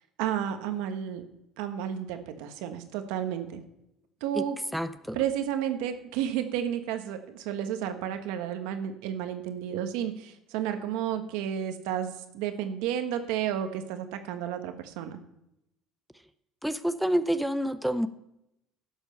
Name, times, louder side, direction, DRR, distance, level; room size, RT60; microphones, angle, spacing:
voice 1, 0.2-1.2 1.6-3.6 4.2-4.6 5.1-15.2, right 10 dB, 85° right, 7 dB, 1.3 m, -32 dB
voice 2, 4.7-5.2 16.6-18.1, equal, ahead, 10 dB, 0.6 m, -28 dB
12.0 x 7.2 x 5.6 m, 0.84 s
cardioid pair, 110°, 0 cm